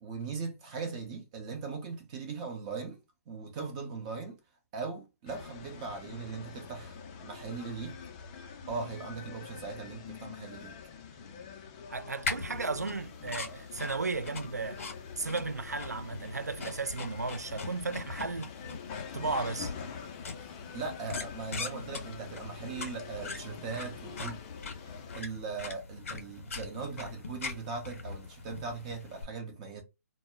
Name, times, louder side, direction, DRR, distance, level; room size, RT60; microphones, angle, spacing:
voice 1, 0.0-3.0 3.3-4.4 4.7-8.0 8.7-10.7 20.4-24.4 24.8-29.8, right 4 dB, 25° right, 0.6 m, -39 dB
sound 1, 5.3-25.2, left 6 dB, 25° left, 0.4 m, -46 dB
voice 2, 11.9-14.8 15.2-18.5 19.1-19.7, right 3 dB, 90° right, 0.4 m, -34 dB
sound 2, 12.2-29.2, left 4 dB, 55° left, 0.8 m, -42 dB
2.1 x 2.0 x 3.4 m
figure-of-eight pair, 140°, 9 cm